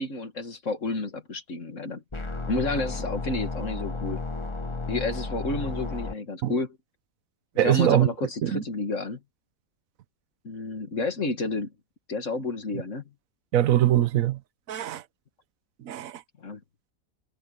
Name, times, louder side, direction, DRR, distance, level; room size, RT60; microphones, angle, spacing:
voice 1, 0.0-2.0 2.5-4.2 4.9-6.8 7.6-9.2 10.4-11.7 12.1-13.0 16.4-16.6, left 2 dB, 50° left, 2.4 m, -30 dB
sound 1, 2.1-6.1, left 3 dB, 20° left, 1.1 m, -33 dB
voice 2, 7.6-8.1 8.4-8.6 13.5-14.4 14.7-15.0 15.8-16.2, right 12 dB, 65° right, 1.2 m, -22 dB
omnidirectional pair, 1.6 m